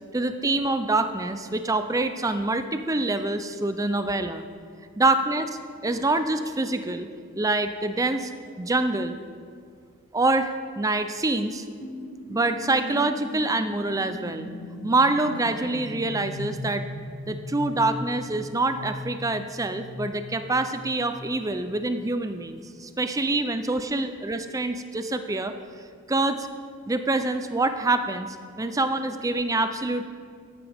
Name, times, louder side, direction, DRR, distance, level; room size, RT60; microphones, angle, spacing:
voice 1, 0.1-4.4 5.0-7.1 7.4-8.3 8.6-9.2 10.1-11.7 12.3-14.5 14.8-16.8 17.3-25.5 26.1-26.5 26.9-30.0, right 2 dB, 15° right, 9 dB, 0.4 m, -26 dB
sound 1, 11.8-22.1, left 1 dB, 65° left, 2.3 m, -39 dB
14.5 x 11.0 x 3.5 m, 2.1 s
head